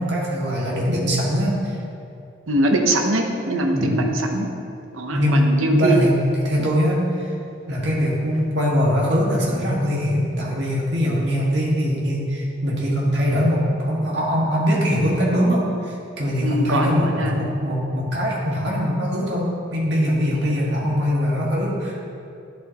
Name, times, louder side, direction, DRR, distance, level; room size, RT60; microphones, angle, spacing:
voice 1, 0.0-1.8 3.7-4.1 5.1-5.5 5.7-7.3 7.7-22.0, equal, 60° right, -5 dB, 1.9 m, -22 dB
voice 2, 2.5-4.5 4.9-6.1 16.4-17.4 20.3-20.6, right 1 dB, 90° right, 3 dB, 0.9 m, -22 dB
11.0 x 7.8 x 3.0 m, 2.6 s
head